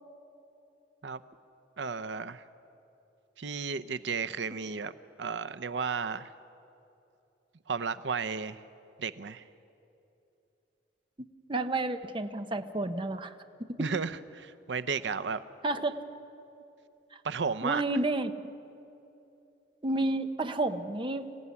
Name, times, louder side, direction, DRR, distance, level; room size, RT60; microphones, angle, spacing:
voice 1, 1.8-2.4 3.4-4.9 5.2-6.3 7.7-8.6 9.0-9.4 13.8-15.4 17.2-17.8, right 5 dB, 85° right, 13 dB, 0.7 m, -33 dB
voice 2, 11.5-13.3 13.8-13.9 15.6-16.0 17.6-18.3 19.8-21.3, right 2 dB, 30° right, 8 dB, 0.9 m, -30 dB
26.0 x 16.0 x 9.7 m, 2.8 s
head